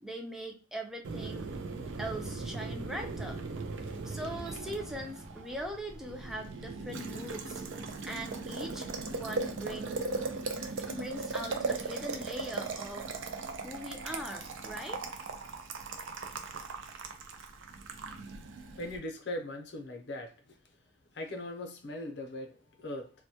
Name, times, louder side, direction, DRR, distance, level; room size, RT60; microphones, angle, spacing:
voice 1, 0.0-1.5 2.0-3.4 4.0-7.6 8.0-10.1 10.8-13.1 13.6-15.0, equal, ahead, 0.4 m, -41 dB
Boiling, 1.0-19.0, right 3 dB, 90° right, 0.4 m, -38 dB
voice 2, 18.8-20.6 21.1-23.1, left 1 dB, 60° left, 0.6 m, -40 dB
2.2 x 2.1 x 2.8 m
head